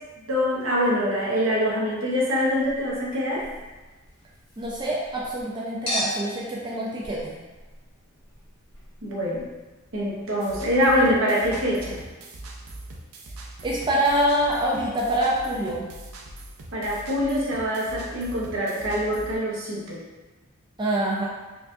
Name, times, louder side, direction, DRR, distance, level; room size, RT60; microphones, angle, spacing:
voice 1, 0.3-3.4 9.0-9.4 9.9-12.0 16.7-20.0, equal, 65° right, -5 dB, 0.9 m, -24 dB
Chink clink, 2.5-5.4 5.9-11.2 11.5-11.6, equal, 25° left, 1.3 m, -38 dB
voice 2, 4.6-7.3 13.6-15.9 20.8-21.3, right 1 dB, 20° right, -5 dB, 0.4 m, -25 dB
sound 1, 10.4-19.4, right 2 dB, 90° right, 0.5 m, -41 dB
4.5 x 2.4 x 2.6 m, 1.2 s
head